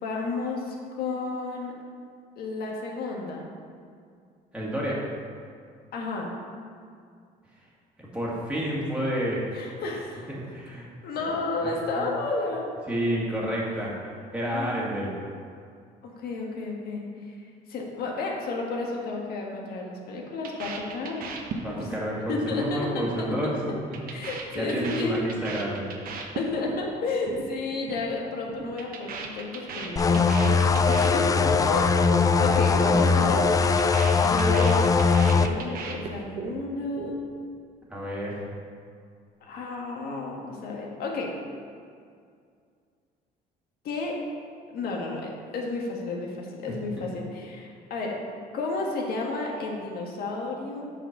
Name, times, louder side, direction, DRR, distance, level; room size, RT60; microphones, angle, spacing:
voice 1, 0.0-1.7 2.4-3.5 5.9-6.3 9.5-10.3 11.0-12.7 14.5-15.0 16.0-17.3 17.7-21.2 21.6-21.9 22.3-23.3 24.1-25.2 26.3-31.4 31.7-32.0 32.4-33.7 34.1-34.8 35.3-37.2 39.4-41.3 43.8-44.2 44.7-48.2 48.5-50.9, left 3 dB, 65° left, -1 dB, 1.6 m, -32 dB
voice 2, 4.5-5.1 8.0-9.5 10.4-10.9 11.2-11.3 11.6-11.7 11.9-12.0 12.9-13.9 14.3-15.1 21.6-23.6 24.6-25.9 37.9-38.4, equal, 5° right, -6 dB, 2.1 m, -29 dB
sound 1, 20.4-22.0 22.3-22.6 22.9-23.2 23.5-26.9 27.1-27.4 27.7-28.1 28.3-31.7 32.0-32.3 32.6-32.9 33.2-36.5 36.8-37.5, right 5 dB, 60° right, 1.0 m, -37 dB
sound 2, 30.0-35.5, left 4 dB, 20° left, 0.3 m, -21 dB
7.9 x 4.6 x 5.9 m, 2.2 s
cardioid pair, 110°, 17 cm